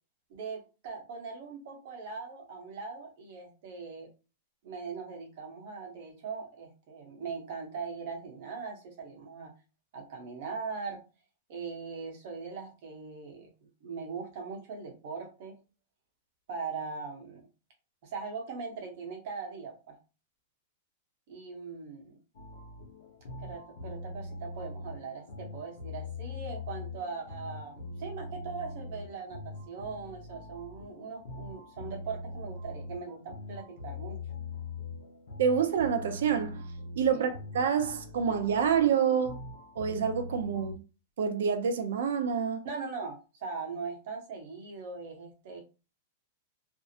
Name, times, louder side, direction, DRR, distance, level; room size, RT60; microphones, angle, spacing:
voice 1, 0.3-4.1 4.6-9.5 9.9-11.0 11.5-13.5 13.8-15.6 16.5-17.5 18.0-20.0 21.3-22.2 23.2-34.2 37.1-37.3 42.6-45.6, right 5 dB, 45° right, 0.9 m, -40 dB
sound 1, 22.3-40.7, left 2 dB, 85° left, 0.8 m, -42 dB
voice 2, 35.4-36.6 37.0-39.4 39.8-40.8 41.2-42.6, right 7 dB, 75° right, 0.5 m, -27 dB
2.6 x 2.0 x 2.7 m
supercardioid pair, 170°, 0 cm